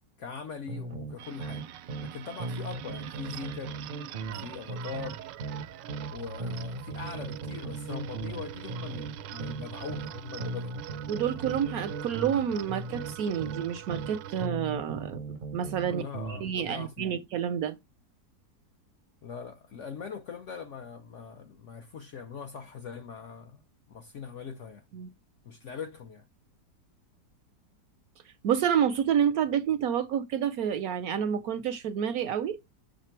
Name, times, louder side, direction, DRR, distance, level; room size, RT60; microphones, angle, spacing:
voice 1, 0.2-1.7 2.0-3.8 4.3-5.2 6.1-10.8 15.9-17.2 19.2-23.6 23.9-24.8 25.4-26.3, left 6 dB, 65° left, 0.8 m, -41 dB
sound 1, 0.7-2.1 2.4-6.1 6.4-10.1 10.4-14.1 14.4-16.5, right 3 dB, 55° right, 0.5 m, -38 dB
sound 2, 1.2-14.5, right 9 dB, 90° right, 1.2 m, -43 dB
voice 2, 11.1-15.2 15.5-16.0 16.3-17.8 24.9-25.1 28.4-32.6, right 8 dB, 70° right, 0.9 m, -29 dB
6.6 x 3.6 x 4.5 m
omnidirectional pair, 1.9 m